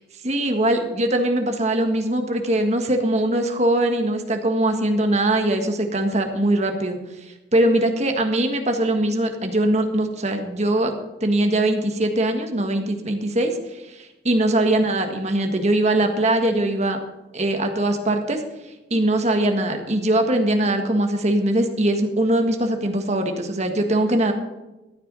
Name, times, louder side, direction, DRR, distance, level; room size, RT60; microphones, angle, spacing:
voice 1, 0.2-7.0 7.5-10.9 11.2-17.0 17.3-18.4 18.9-24.3, right 1 dB, 40° right, 5 dB, 1.7 m, -21 dB
14.0 x 9.4 x 5.4 m, 1.0 s
head